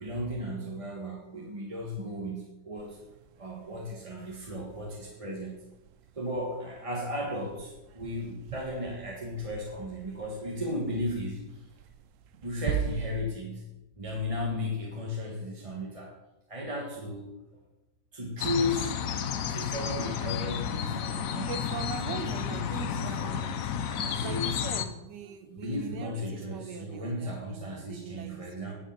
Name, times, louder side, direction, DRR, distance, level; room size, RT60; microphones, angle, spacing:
voice 1, 0.0-3.0 3.4-5.6 6.2-11.6 12.4-13.7 14.0-16.2 16.5-17.2 18.1-19.0 19.5-21.5 22.1-24.6 25.6-28.7, left 1 dB, 20° right, -1 dB, 1.3 m, -35 dB
sound 1, 2.8-13.2, right 8 dB, 70° right, 0.7 m, -42 dB
sound 2, 18.4-24.8, left 8 dB, 60° left, 1.0 m, -32 dB
voice 2, 21.4-23.6 24.2-28.5, right 7 dB, 85° right, 8 dB, 1.5 m, -41 dB
10.0 x 5.1 x 7.6 m, 0.94 s
omnidirectional pair, 1.8 m